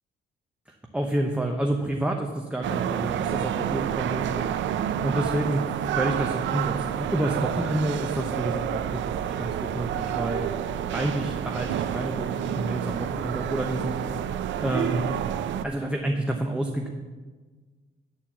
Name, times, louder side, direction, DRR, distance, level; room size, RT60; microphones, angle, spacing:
voice 1, 0.7-4.5 5.0-5.6 6.0-10.5 10.9-14.0 14.6-15.0 15.6-16.9, right 1 dB, 5° right, 1 dB, 0.8 m, -29 dB
sound 1, 2.6-15.7, right 9 dB, 70° right, 0.5 m, -29 dB
11.0 x 4.4 x 7.3 m, 1.4 s
cardioid pair, 90°, 20 cm